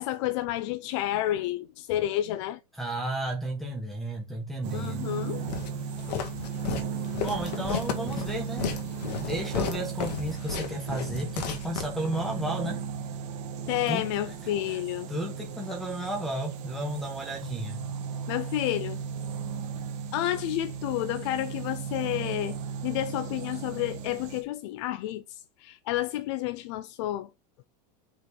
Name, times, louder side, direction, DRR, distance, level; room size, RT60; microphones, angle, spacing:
voice 1, 0.0-2.6 4.7-5.4 6.7-6.8 13.7-15.1 18.3-19.0 20.1-22.6 22.8-27.3, left 14 dB, 45° left, 0.5 m, -30 dB
voice 2, 2.7-5.1 7.2-8.7 9.2-12.8 13.9-14.8 15.1-17.9, right 1 dB, ahead, 1.1 m, -33 dB
sound 1, 4.6-24.4, right 6 dB, 35° right, 1.3 m, -36 dB
Walk footsteps, 5.5-12.4, left 7 dB, 80° left, 2.0 m, -34 dB
5.4 x 4.4 x 5.2 m
supercardioid pair, 175°, 20 cm